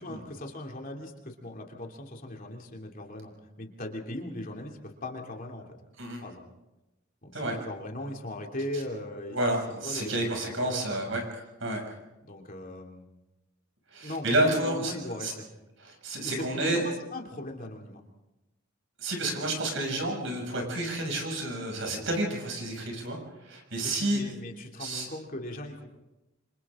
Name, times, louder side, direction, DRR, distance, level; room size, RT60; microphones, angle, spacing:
voice 1, 0.0-3.3 3.6-5.7 6.2-6.4 7.2-9.6 9.8-11.0 12.2-13.1 14.0-15.5 16.2-18.0 23.9-25.9, left 1 dB, 40° left, 1 dB, 2.9 m, -39 dB
voice 2, 9.3-11.2 11.6-11.8 13.9-15.3 15.8-16.8 19.0-23.2 23.4-24.3 24.8-25.1, right 1 dB, 65° right, 2 dB, 6.6 m, -30 dB
27.0 x 27.0 x 3.8 m, 0.97 s
head